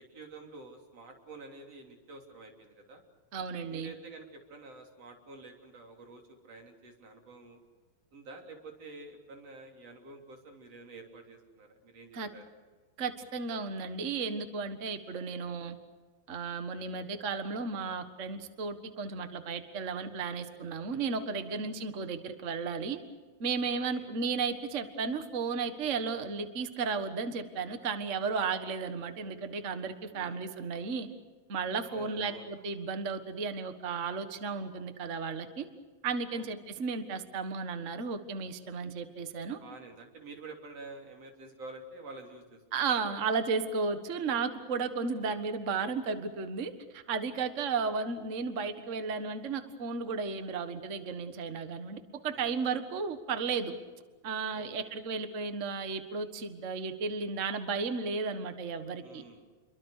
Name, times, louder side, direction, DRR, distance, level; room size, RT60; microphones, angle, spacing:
voice 1, 0.0-3.0 3.7-7.6 8.1-12.4 16.9-17.1 21.4-21.6 23.9-24.1 30.1-30.4 31.9-32.5 36.3-36.8 39.5-43.1 45.2-45.3 47.7-47.9 52.3-52.5 54.5-54.9 59.0-59.5, right 3 dB, 45° right, 3 dB, 4.3 m, -49 dB
voice 2, 3.3-3.9 12.1-12.3 13.0-15.8 16.3-23.0 23.4-31.1 31.5-35.7 36.0-39.6 42.7-53.7 54.2-59.2, right 5 dB, 60° right, 9 dB, 0.7 m, -34 dB
28.5 x 23.0 x 6.6 m, 1.4 s
omnidirectional pair, 4.0 m